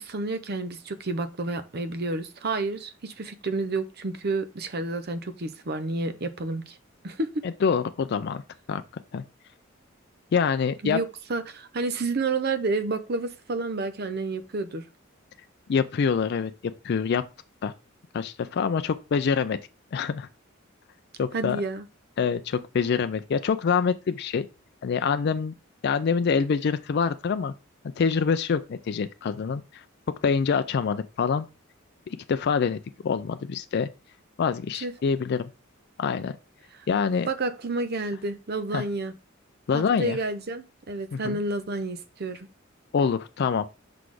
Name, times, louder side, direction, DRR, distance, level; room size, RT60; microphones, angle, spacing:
voice 1, 0.0-6.8 7.0-7.4 10.8-14.8 21.3-21.9 34.8-34.9 37.3-39.1 39.7-42.5, right 3 dB, 50° right, 0.7 m, -30 dB
voice 2, 7.4-8.4 8.7-8.8 9.1-9.2 10.3-11.0 15.7-16.5 16.8-17.2 17.6-17.7 18.1-19.6 19.9-20.3 21.2-21.6 22.2-24.5 24.8-25.5 25.8-27.5 28.0-29.8 30.2-31.5 32.1-33.9 34.4-35.5 36.0-36.3 36.9-37.3 38.7-38.8 39.7-40.2 41.1-41.4 42.9-43.7, left 6 dB, 55° left, 0.4 m, -25 dB
5.7 x 4.1 x 4.8 m
head